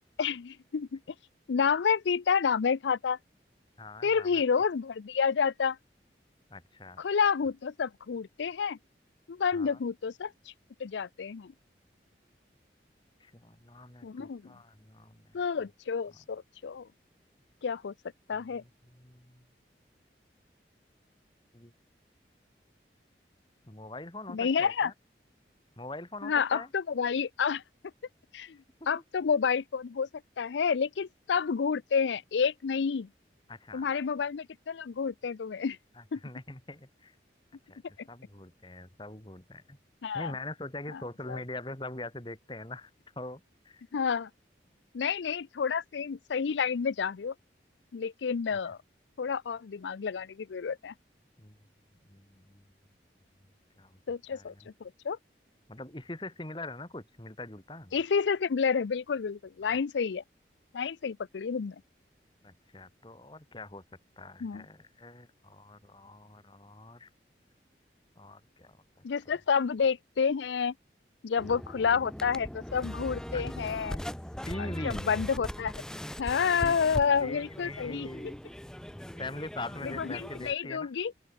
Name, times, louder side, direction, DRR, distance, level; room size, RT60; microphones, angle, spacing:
voice 1, 0.2-1.0 1.5-3.2 4.0-5.8 7.0-8.8 9.3-10.3 10.8-11.5 14.0-14.5 15.3-16.9 17.6-17.9 18.3-18.6 24.3-24.9 26.2-27.6 28.3-28.6 28.9-30.1 30.4-33.1 33.7-35.8 36.1-36.2 40.0-40.3 40.9-41.0 41.3-41.4 43.9-44.3 44.9-47.3 47.9-48.8 49.2-50.9 54.1-54.5 54.8-55.2 57.9-60.2 60.7-61.8 64.4-64.7 69.0-70.7 71.2-74.0 74.6-75.8 76.2-78.1 79.8-81.1, left 6 dB, 90° left, 0.5 m, -29 dB
voice 2, 3.8-4.4 6.5-7.0 9.5-9.8 13.2-15.3 18.6-19.4 21.5-21.7 23.7-24.9 25.8-26.7 33.5-33.9 36.0-37.1 37.7-39.8 40.1-42.9 43.2-43.8 51.4-51.6 52.1-52.6 53.8-54.0 54.3-54.5 55.7-57.9 59.6-59.8 62.4-63.8 64.2-67.1 68.2-68.8 73.3-73.4 74.5-75.1 76.6-76.8 77.2-78.4 79.2-80.9, left 2 dB, 25° left, 2.7 m, -43 dB
sound 1, 71.4-80.5, equal, 5° left, 0.5 m, -40 dB
open air
head